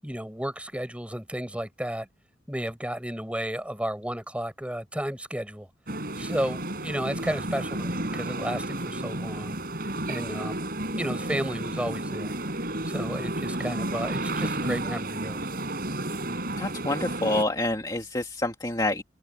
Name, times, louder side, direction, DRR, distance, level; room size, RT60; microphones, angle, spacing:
voice 1, 0.0-2.1 2.5-5.7 6.2-9.6 10.1-10.6 10.9-12.3 12.9-15.4, equal, 5° right, 7.1 m, -33 dB
sound 1, 5.9-17.4, right 1 dB, 55° right, 5.8 m, -32 dB
voice 2, 16.6-19.0, left 2 dB, 20° left, 2.1 m, -27 dB
head